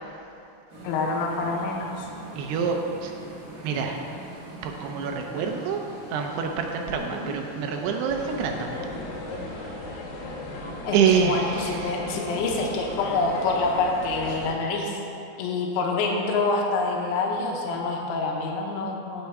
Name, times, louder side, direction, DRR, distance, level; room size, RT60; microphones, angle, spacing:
sound 1, 0.7-11.2, right 2 dB, 45° right, 1.1 m, -42 dB
voice 1, 0.8-2.1 7.0-7.4 10.8-15.0 15.4-19.3, left 3 dB, 85° left, 0 dB, 3.4 m, -27 dB
voice 2, 2.4-3.1 3.6-4.1 4.6-5.8 6.1-8.9 9.3-9.8 10.9-12.1, right 6 dB, 80° right, 3 dB, 2.5 m, -27 dB
sound 2, 8.1-14.5, left 2 dB, 65° left, 2.7 m, -36 dB
17.0 x 6.6 x 4.7 m, 2.8 s
omnidirectional pair, 5.3 m